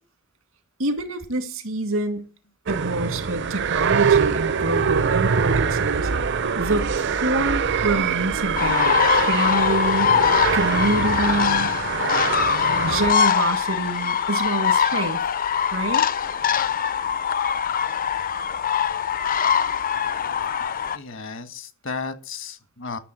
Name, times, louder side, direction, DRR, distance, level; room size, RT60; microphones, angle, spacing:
voice 1, 0.8-2.3 2.7-10.1 10.5-11.7 12.8-15.2 15.7-16.1, right 2 dB, 85° right, 2.0 m, -27 dB
sound 1, 2.7-13.1, right 6 dB, 60° right, 0.7 m, -23 dB
sound 2, 8.6-21.0, left 7 dB, 45° left, 0.6 m, -22 dB
voice 2, 20.9-23.0, left 4 dB, 70° left, 1.6 m, -34 dB
11.0 x 6.8 x 8.9 m
head